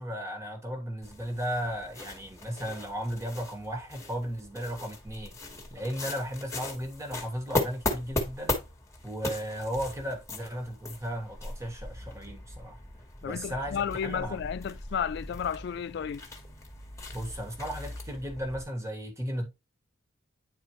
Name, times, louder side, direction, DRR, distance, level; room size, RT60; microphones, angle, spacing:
voice 1, 0.0-5.3 5.7-8.6 9.0-12.8 13.2-14.4 17.1-19.5, equal, 15° right, 1.4 m, -35 dB
sound 1, 1.0-18.6, left 2 dB, 15° left, 1.4 m, -38 dB
voice 2, 13.2-16.3, left 7 dB, 55° left, 0.3 m, -33 dB
9.5 x 4.3 x 3.0 m
head